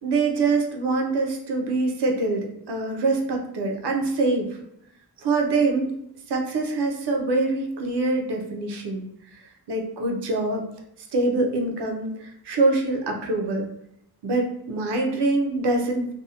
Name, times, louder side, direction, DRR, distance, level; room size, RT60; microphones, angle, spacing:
voice 1, 0.0-4.6 5.2-5.9 6.3-9.0 9.3-9.4 9.7-10.6 11.1-13.7 14.2-16.1, right 3 dB, 90° right, 2 dB, 0.6 m, -24 dB
2.6 x 2.0 x 2.7 m, 0.77 s
wide cardioid pair, 85°, 39 cm